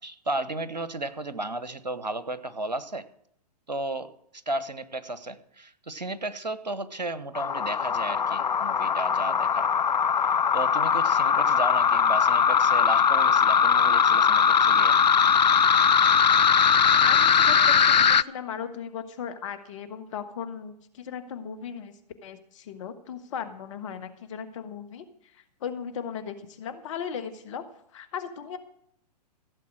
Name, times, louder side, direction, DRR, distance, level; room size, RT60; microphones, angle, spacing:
voice 1, 0.0-3.0 3.7-4.1 4.5-9.7 10.2-10.3 10.5-15.0, right 2 dB, 90° right, 14 dB, 1.1 m, -34 dB
sound 1, 7.3-18.2, left 7 dB, 90° left, 0.4 m, -20 dB
voice 2, 17.0-21.9 22.2-25.0 25.3-27.6 27.9-28.6, left 7 dB, 50° left, 10 dB, 1.6 m, -37 dB
16.0 x 7.8 x 6.4 m, 0.72 s
figure-of-eight pair, 115°, 21 cm